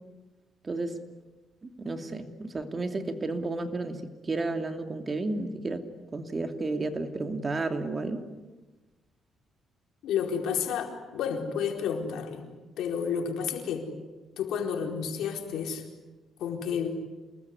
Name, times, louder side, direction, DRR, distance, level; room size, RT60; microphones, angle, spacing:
voice 1, 0.6-1.0 1.6-5.8 6.1-8.3, right 2 dB, 30° right, 7 dB, 2.8 m, -32 dB
voice 2, 10.0-12.5 12.8-13.9 14.4-15.8 16.4-16.9, left 7 dB, 80° left, 3 dB, 4.5 m, -31 dB
28.5 x 20.5 x 9.7 m, 1.2 s
cardioid pair, 90°, 0 cm